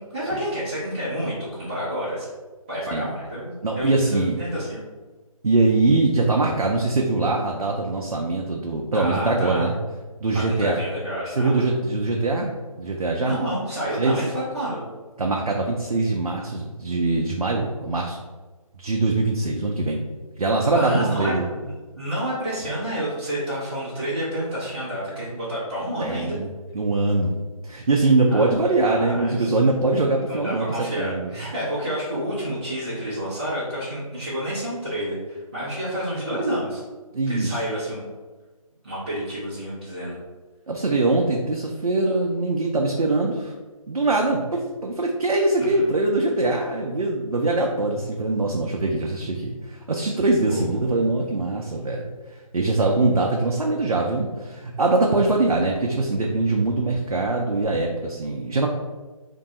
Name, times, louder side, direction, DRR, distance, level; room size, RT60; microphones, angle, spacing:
voice 1, 0.0-2.3 2.7-4.8 8.9-9.7 10.3-11.8 13.2-14.8 20.6-26.4 28.3-28.5 28.8-29.6 30.3-36.8 37.3-38.1 38.8-40.2 45.6-45.7 50.5-50.9, equal, 15° right, -12 dB, 0.5 m, -29 dB
voice 2, 3.6-4.4 5.4-9.8 10.2-10.8 11.3-12.5 12.8-13.4 14.0-14.2 15.2-18.2 18.8-20.1 20.4-21.5 26.0-26.5 26.7-27.3 27.6-31.3 37.1-37.6 40.7-43.5 43.9-52.1 52.3-58.7, right 2 dB, 80° right, 0 dB, 0.5 m, -22 dB
2.6 x 2.2 x 4.0 m, 1.3 s
figure-of-eight pair, 150°, 19 cm